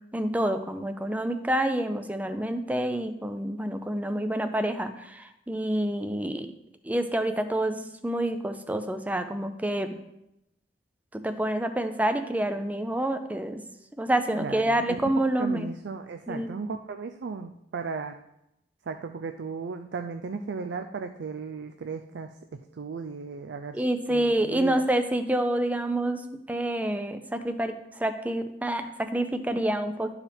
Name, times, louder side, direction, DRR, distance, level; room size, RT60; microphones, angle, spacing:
voice 1, 0.1-6.5 6.8-10.0 11.2-13.6 14.0-15.6 16.3-16.5 23.7-26.2 26.5-27.7 28.0-30.1, right 1 dB, 10° right, 8 dB, 0.5 m, -28 dB
voice 2, 14.4-15.0 15.4-18.2 18.9-23.8 24.1-24.8, right 4 dB, 80° right, 6 dB, 0.4 m, -36 dB
11.5 x 4.7 x 3.5 m, 0.85 s
head